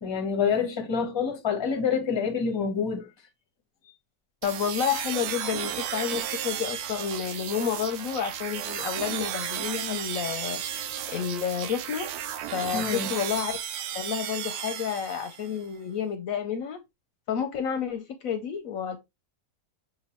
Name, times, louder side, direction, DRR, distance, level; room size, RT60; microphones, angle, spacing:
voice 1, 0.0-3.1 12.7-13.1, left 6 dB, 25° left, 0.7 m, -27 dB
voice 2, 4.4-10.6 11.1-12.1 12.5-13.6 13.9-16.8 17.3-19.0, left 8 dB, 70° left, 0.9 m, -30 dB
sound 1, 4.4-15.6, right 10 dB, 75° right, 1.0 m, -34 dB
5.9 x 2.9 x 2.9 m
omnidirectional pair, 1.7 m